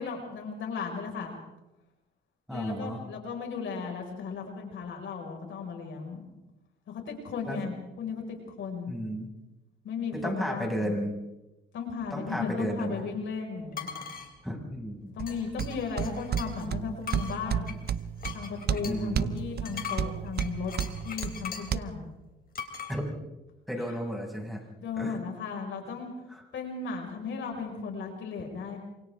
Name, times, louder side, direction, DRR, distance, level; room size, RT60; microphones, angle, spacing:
voice 1, 0.0-1.4 2.5-6.2 6.9-8.9 9.8-10.9 11.7-14.1 15.2-17.7 18.3-20.7 21.0-22.0 23.8-24.0 24.8-26.1 26.5-28.8, left 5 dB, 75° left, 2 dB, 5.6 m, -36 dB
voice 2, 2.5-3.0 7.5-7.6 8.9-9.3 10.1-11.1 12.1-13.1 14.4-15.1 18.8-19.4 22.9-23.1 23.7-24.6 25.0-25.2 26.3-26.4, equal, ahead, -1 dB, 6.6 m, -33 dB
sound 1, 13.7-14.3 15.3-16.7 17.0-21.8 22.6-22.9, left 6 dB, 50° left, 3.6 m, -40 dB
sound 2, 15.2-21.8, right 9 dB, 55° right, 0.8 m, -33 dB
27.5 x 27.0 x 3.7 m, 0.99 s
cardioid pair, 90°, 20 cm